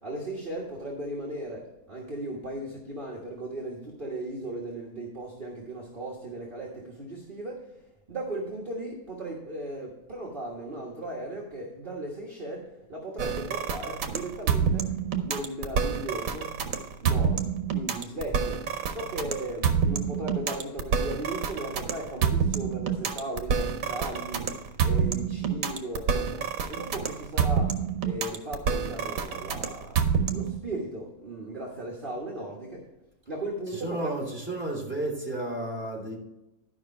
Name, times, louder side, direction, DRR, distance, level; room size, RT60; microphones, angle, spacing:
voice 1, 0.0-7.7 8.1-14.9 15.2-16.6 17.0-18.6 18.9-32.8 33.3-34.1, right 1 dB, 40° right, -3 dB, 1.6 m, -37 dB
sound 1, 13.2-30.6, right 6 dB, 75° right, 1.3 m, -27 dB
voice 2, 33.7-36.2, right 2 dB, 10° right, -4 dB, 2.8 m, -32 dB
12.0 x 5.6 x 4.3 m, 0.93 s
omnidirectional pair, 1.5 m